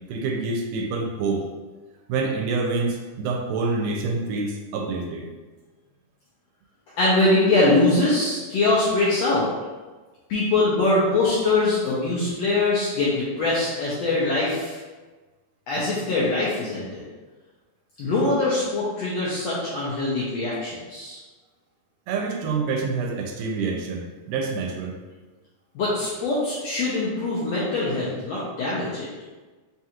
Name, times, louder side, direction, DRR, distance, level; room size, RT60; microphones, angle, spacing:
voice 1, 0.1-1.4 2.1-5.3 22.1-24.9, right 4 dB, 85° right, 1 dB, 2.2 m, -27 dB
voice 2, 7.0-9.5 10.3-14.8 15.7-17.0 18.0-21.2 25.7-29.1, left 2 dB, 75° left, -8 dB, 1.5 m, -23 dB
5.2 x 2.4 x 2.9 m, 1.3 s
omnidirectional pair, 3.8 m